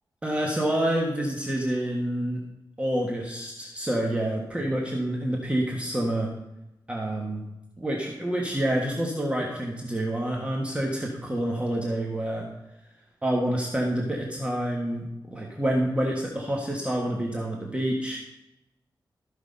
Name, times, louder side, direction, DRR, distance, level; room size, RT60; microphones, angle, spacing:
voice 1, 0.2-2.4 2.8-6.3 6.9-7.4 7.8-12.5 13.2-18.2, right 1 dB, 15° right, -2 dB, 1.6 m, -28 dB
14.0 x 6.0 x 5.4 m, 0.89 s
wide cardioid pair, 125°, 8 cm